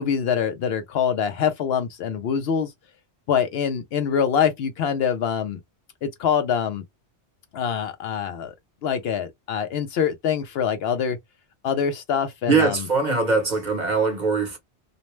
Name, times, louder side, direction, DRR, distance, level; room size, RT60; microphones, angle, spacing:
voice 1, 0.0-2.7 3.3-5.6 6.0-6.8 7.5-8.5 8.8-11.2 11.6-12.9, left 7 dB, 65° left, 0.7 m, -24 dB
voice 2, 12.5-14.6, right 4 dB, 45° right, 0.8 m, -22 dB
2.5 x 2.1 x 2.9 m
omnidirectional pair, 1.2 m